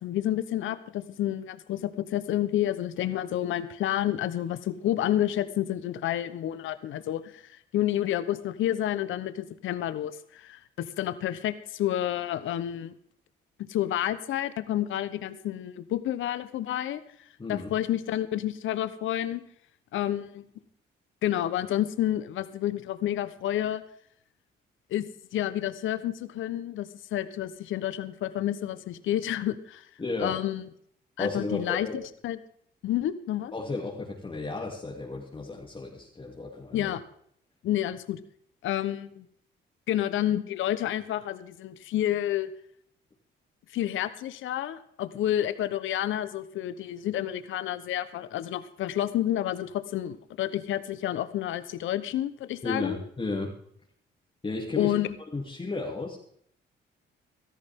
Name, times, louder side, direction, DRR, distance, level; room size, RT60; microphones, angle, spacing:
voice 1, 0.0-12.9 13.7-19.4 19.9-20.4 21.2-23.8 24.9-25.0 25.3-29.9 30.2-30.7 31.2-32.4 32.8-33.5 36.7-37.0 37.6-38.2 38.6-39.3 39.9-42.5 43.7-53.0 54.8-55.1, left 12 dB, 80° left, 13 dB, 1.0 m, -30 dB
voice 2, 17.4-17.7 30.0-30.4 31.2-32.0 33.5-36.9 52.6-53.5 54.4-54.9 55.3-56.2, left 3 dB, 25° left, -2 dB, 2.8 m, -33 dB
16.5 x 13.5 x 3.7 m, 0.66 s
cardioid pair, 90°, 20 cm